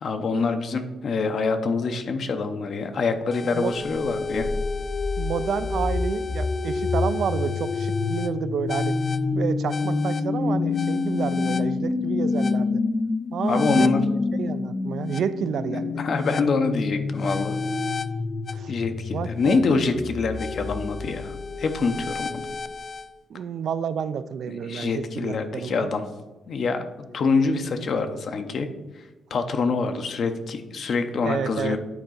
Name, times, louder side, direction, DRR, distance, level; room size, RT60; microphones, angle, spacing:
voice 1, 0.0-4.5 13.5-14.0 16.0-17.6 18.7-22.5 24.5-26.1 26.5-26.8 27.1-28.7 29.0-31.8, left 4 dB, 60° left, 7 dB, 0.7 m, -25 dB
sound 1, 3.3-23.1, left 4 dB, 35° left, 0.4 m, -27 dB
voice 2, 5.2-9.0 9.3-12.8 13.3-13.9 14.3-16.0 18.5-18.7 19.1-19.6 23.3-25.9 31.2-31.8, right 7 dB, 75° right, 13 dB, 0.3 m, -30 dB
9.1 x 4.1 x 3.9 m, 1.1 s
cardioid pair, 85°, 0 cm